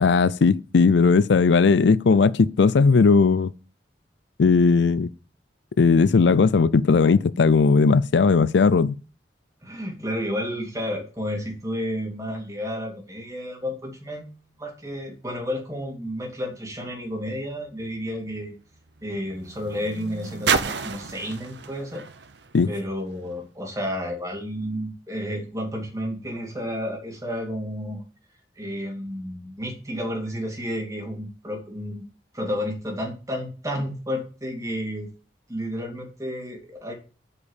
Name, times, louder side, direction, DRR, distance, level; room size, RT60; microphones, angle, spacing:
voice 1, 0.0-3.5 4.4-5.1 5.8-9.0 22.5-22.7, left 4 dB, 80° left, 0.4 m, -17 dB
voice 2, 9.6-18.5 19.0-22.0 22.7-28.0 28.6-32.0 32.3-35.1 35.5-36.9, equal, 20° right, 2.5 m, -31 dB
sound 1, 16.9-23.4 24.3-24.4, right 5 dB, 75° right, 0.8 m, -32 dB
8.2 x 5.2 x 7.2 m
head